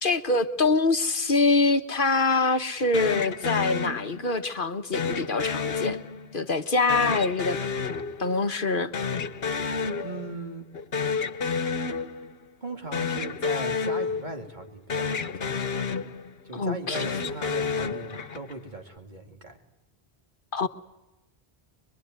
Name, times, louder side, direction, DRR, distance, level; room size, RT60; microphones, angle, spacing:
voice 1, 0.0-6.0 6.3-7.6 8.2-8.9 16.5-17.0 20.5-20.7, left 3 dB, 55° left, 1.3 m, -24 dB
sound 1, 2.9-4.5 4.9-6.5 6.9-8.7 8.9-10.5 10.7-12.5 12.9-14.6 14.9-16.5 16.9-18.6, left 5 dB, 75° left, 1.4 m, -30 dB
voice 2, 10.0-10.7 12.6-15.5 16.4-19.6, right 2 dB, 50° right, 3.2 m, -38 dB
25.0 x 22.0 x 9.5 m
omnidirectional pair, 1.0 m